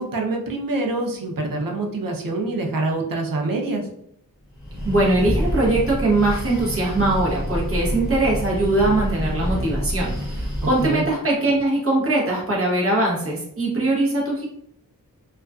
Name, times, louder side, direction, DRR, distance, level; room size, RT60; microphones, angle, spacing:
voice 1, 0.0-3.9 10.8-11.1, right 2 dB, 75° right, 2 dB, 0.6 m, -25 dB
Breathing, 4.5-11.1, equal, ahead, 1.2 m, -27 dB
voice 2, 4.8-14.5, right 2 dB, 40° right, -4 dB, 0.8 m, -21 dB
2.4 x 2.2 x 2.3 m, 0.70 s
wide cardioid pair, 85°, 35 cm